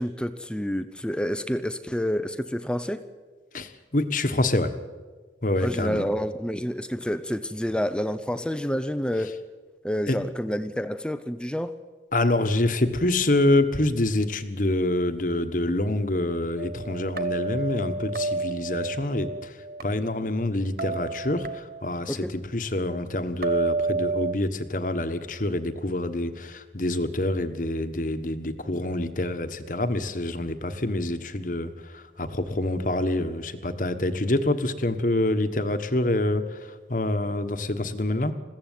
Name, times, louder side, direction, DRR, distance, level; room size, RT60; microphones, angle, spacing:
voice 1, 0.0-3.0 5.6-9.3 9.8-11.7 22.1-22.3, equal, 5° left, 11 dB, 0.6 m, -28 dB
voice 2, 3.5-4.7 5.4-6.1 10.1-10.2 12.1-38.3, left 1 dB, 45° left, 10 dB, 1.3 m, -26 dB
sound 1, 16.6-19.8 20.8-22.0 23.4-24.3, right 3 dB, 50° right, 1.1 m, -30 dB
21.5 x 16.0 x 9.3 m, 1.4 s
head